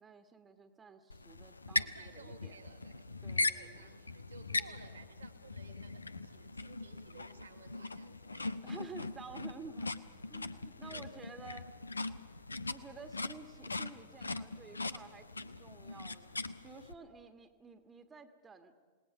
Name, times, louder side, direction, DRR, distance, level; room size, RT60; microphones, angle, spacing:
voice 1, 0.0-2.5 3.2-3.9 7.7-7.9 8.6-11.7 12.7-16.4 16.6-18.7, right 4 dB, 20° right, 8 dB, 1.5 m, -52 dB
sound 1, 1.1-16.9, left 3 dB, 80° left, 0.7 m, -40 dB
voice 2, 1.7-3.1 3.5-8.5 10.8-11.4, right 4 dB, 80° right, 1 dB, 2.1 m, -57 dB
28.0 x 19.0 x 6.0 m, 1.5 s
figure-of-eight pair, 90°, 0 cm